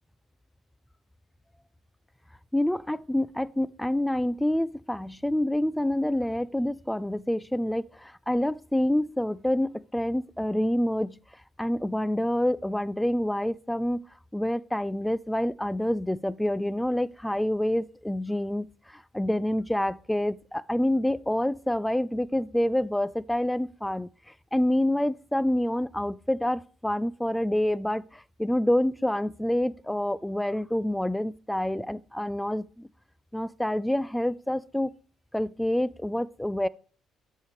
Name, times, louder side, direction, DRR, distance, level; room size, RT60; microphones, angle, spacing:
voice 1, 2.5-11.1 11.6-14.0 14.3-24.1 24.5-32.9 33.3-34.9 35.3-36.7, left 1 dB, 5° left, 0.3 m, -27 dB
7.9 x 6.5 x 3.3 m
supercardioid pair, 65°, 0 cm